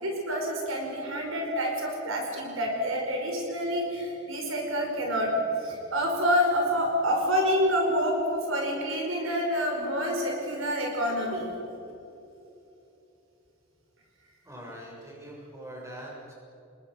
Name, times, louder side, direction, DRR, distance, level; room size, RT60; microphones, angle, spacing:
voice 1, 0.0-5.3 5.6-11.5, equal, 65° right, 1 dB, 5.2 m, -27 dB
voice 2, 14.4-16.3, right 1 dB, 15° right, -3 dB, 6.7 m, -43 dB
29.5 x 21.0 x 6.5 m, 2.8 s
head